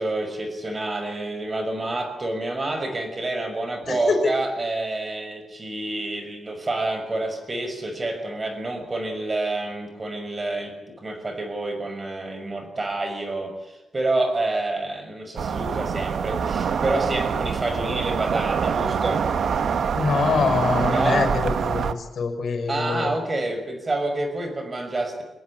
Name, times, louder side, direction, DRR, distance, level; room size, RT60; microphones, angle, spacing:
voice 1, 0.0-19.2 20.8-21.3 22.7-25.2, right 2 dB, 25° right, 7 dB, 6.0 m, -28 dB
voice 2, 3.8-4.3 6.2-6.3 19.9-23.1, left 5 dB, 55° left, 7 dB, 6.3 m, -24 dB
sound 1, 15.4-21.9, right 6 dB, 60° right, 1.5 m, -25 dB
25.0 x 21.0 x 8.5 m, 0.92 s
wide cardioid pair, 150°, 0 cm